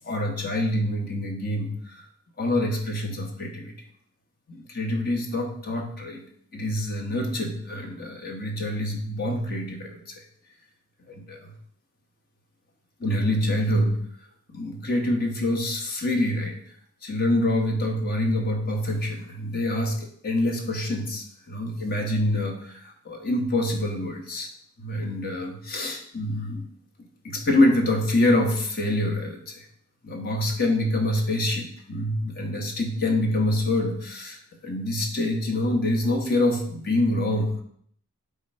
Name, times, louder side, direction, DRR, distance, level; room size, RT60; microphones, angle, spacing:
voice 1, 0.0-1.7 2.4-3.7 4.5-6.2 6.5-10.2 11.1-11.5 13.0-14.0 14.5-16.5 17.0-20.0 20.2-22.8 23.0-24.5 24.8-26.6 27.2-29.6 30.0-34.4 34.6-37.6, left 1 dB, 45° left, 2 dB, 1.3 m, -26 dB
9.8 x 3.8 x 4.4 m, 0.65 s
head